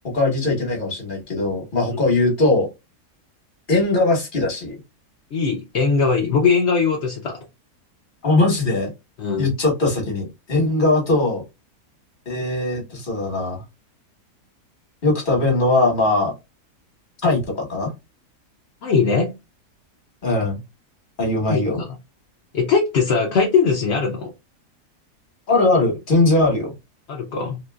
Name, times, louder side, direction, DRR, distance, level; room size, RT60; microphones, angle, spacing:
voice 1, 0.1-2.7 3.7-4.7 8.2-8.9 9.4-11.4 12.3-13.6 15.0-16.3 17.2-17.9 20.2-20.6 21.2-21.8 25.5-26.7, left 2 dB, 35° left, 1.2 m, -20 dB
voice 2, 5.3-7.4 9.2-9.5 18.8-19.3 21.5-21.9 22.5-24.3 27.1-27.6, left 5 dB, 60° left, 0.7 m, -20 dB
2.9 x 2.9 x 2.3 m
omnidirectional pair, 1.7 m